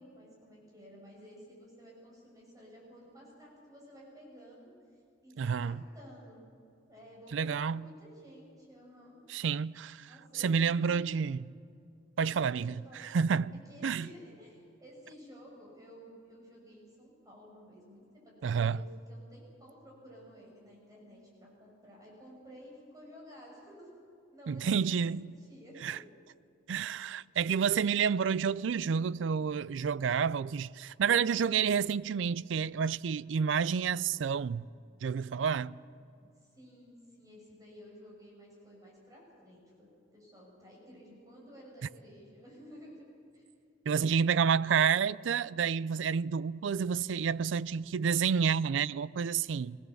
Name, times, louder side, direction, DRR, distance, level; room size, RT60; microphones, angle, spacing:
voice 1, 0.0-4.7 5.2-6.4 6.9-9.2 10.1-11.2 12.3-13.1 13.7-23.9 24.3-26.0 35.3-36.1 36.5-43.0 43.3-43.4, equal, 20° right, 6.4 m, -53 dB
voice 2, 5.4-5.8 7.3-7.8 9.3-11.4 12.2-12.8 13.1-13.5 13.8-14.1 18.4-18.8 24.5-25.3 25.8-26.0 26.7-34.7 35.0-35.7 43.9-49.8, right 6 dB, 75° right, 0.4 m, -29 dB
23.5 x 17.0 x 7.1 m
head